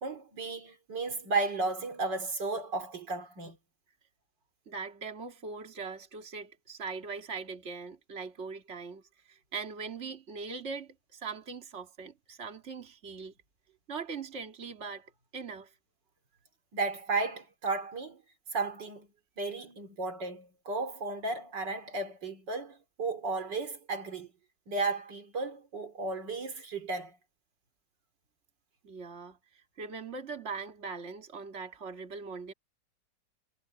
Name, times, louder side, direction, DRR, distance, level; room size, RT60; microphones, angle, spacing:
voice 1, 0.0-3.6 16.7-18.2 18.5-19.1 19.4-24.3 24.7-27.2, right 3 dB, 70° right, 3.6 m, -34 dB
voice 2, 4.7-13.3 13.9-15.7 28.8-29.4 29.8-32.5, right 5 dB, 35° right, 2.7 m, -41 dB
omnidirectional pair, 2.0 m